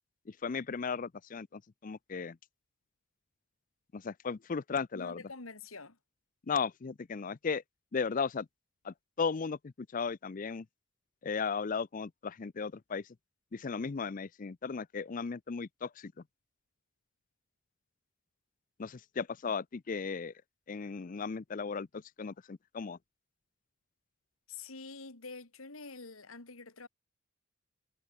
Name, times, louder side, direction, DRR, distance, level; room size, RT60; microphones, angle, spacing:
voice 1, 0.3-2.4 3.9-5.2 6.5-7.6 7.9-8.5 8.8-10.6 11.2-13.1 13.5-16.1 18.8-20.3 20.7-23.0, left 5 dB, 40° left, 0.5 m, -36 dB
voice 2, 4.9-6.0 24.5-26.9, left 4 dB, 85° left, 2.7 m, -46 dB
head